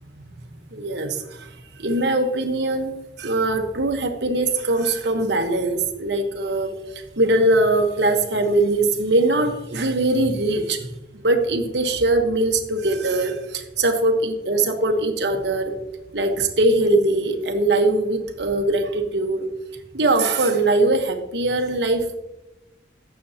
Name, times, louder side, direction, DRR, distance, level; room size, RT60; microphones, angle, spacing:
voice 1, 0.4-2.9 3.2-15.8 16.1-19.5 19.9-22.2, right 2 dB, 65° right, 6 dB, 1.1 m, -21 dB
15.5 x 6.9 x 2.8 m, 0.97 s
head